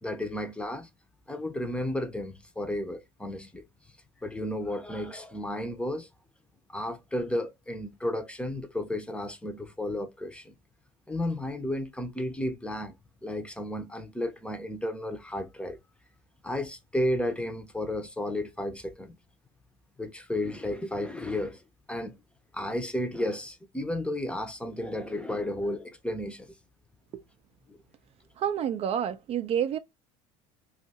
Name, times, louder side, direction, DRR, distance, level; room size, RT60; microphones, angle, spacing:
voice 1, 0.0-0.9 1.3-3.7 4.2-6.1 6.7-10.5 11.1-12.9 13.2-15.8 16.4-19.2 20.0-21.6 21.9-22.2 22.5-26.5 27.7-27.8, left 1 dB, 10° left, 0.7 m, -33 dB
voice 2, 28.4-29.8, right 9 dB, 45° right, 0.5 m, -29 dB
2.6 x 2.4 x 4.0 m
supercardioid pair, 95°, 14 cm